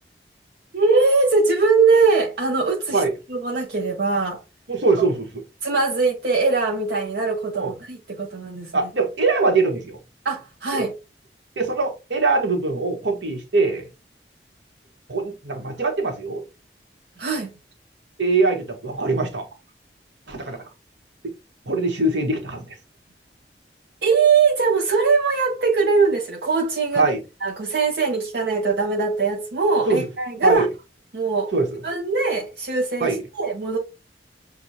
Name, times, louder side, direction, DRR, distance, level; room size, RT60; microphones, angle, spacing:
voice 1, 0.7-3.0 3.3-4.4 5.6-8.9 10.2-10.9 17.2-17.5 24.0-27.1 27.4-30.7 31.1-31.5 31.8-33.8, right 4 dB, 70° right, 0.6 m, -21 dB
voice 2, 4.7-5.4 7.5-7.7 8.7-10.0 10.7-10.9 11.6-13.9 15.1-16.4 18.2-19.5 20.3-20.6 21.2-21.3 21.7-22.8 26.9-27.2 29.9-30.1 30.4-30.7 31.5-31.8 33.0-33.2, right 3 dB, 85° right, 1.1 m, -22 dB
6.1 x 2.3 x 2.7 m
head